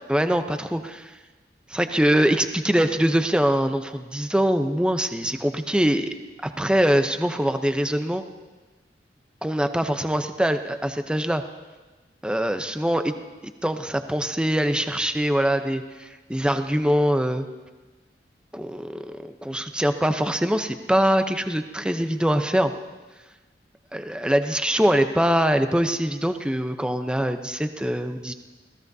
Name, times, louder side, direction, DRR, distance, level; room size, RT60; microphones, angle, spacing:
voice 1, 0.1-1.1 1.7-6.1 6.4-8.2 9.4-11.4 12.2-13.1 13.6-17.5 18.5-19.0 19.4-22.7 23.9-28.3, equal, 5° right, 7 dB, 0.7 m, -23 dB
28.5 x 17.0 x 2.7 m, 1.2 s
head